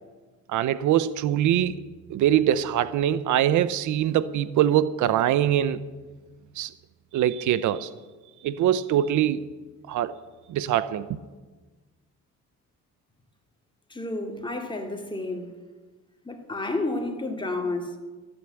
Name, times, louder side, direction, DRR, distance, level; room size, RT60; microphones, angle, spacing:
voice 1, 0.5-1.7 2.1-5.8 6.6-6.7 7.1-7.9 8.4-9.5 9.9-10.1 10.5-11.1, right 11 dB, 80° right, 0.6 m, -23 dB
voice 2, 13.9-15.5 16.2-18.0, left 2 dB, 15° left, 2.4 m, -30 dB
14.0 x 8.8 x 8.1 m
cardioid pair, 90°, 30 cm